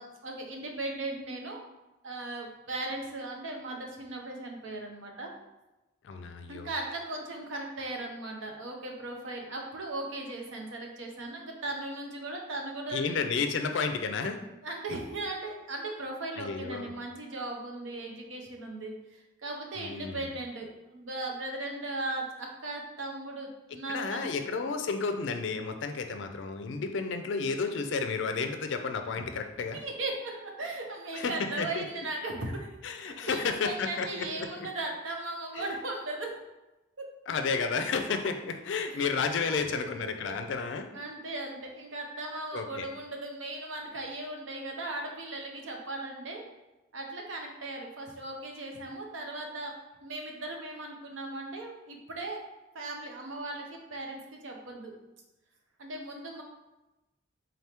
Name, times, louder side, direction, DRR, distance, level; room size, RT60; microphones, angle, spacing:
voice 1, 0.0-1.6 2.0-5.3 6.5-13.2 14.6-24.4 29.2-29.3 29.7-32.7 33.0-36.4 37.0-37.1 38.8-39.1 39.5-40.6 40.9-46.4 46.9-49.7 50.0-52.4 52.7-54.9 55.8-56.4, right 2 dB, 80° right, 1 dB, 0.7 m, -38 dB
voice 2, 6.0-6.7 12.9-14.4 16.4-16.9 19.8-20.2 23.9-29.8 31.1-31.8 32.8-34.7 35.6-35.7 37.3-40.9 42.5-42.9, left 5 dB, 65° left, 6 dB, 0.4 m, -32 dB
3.8 x 3.4 x 2.9 m, 1.0 s
head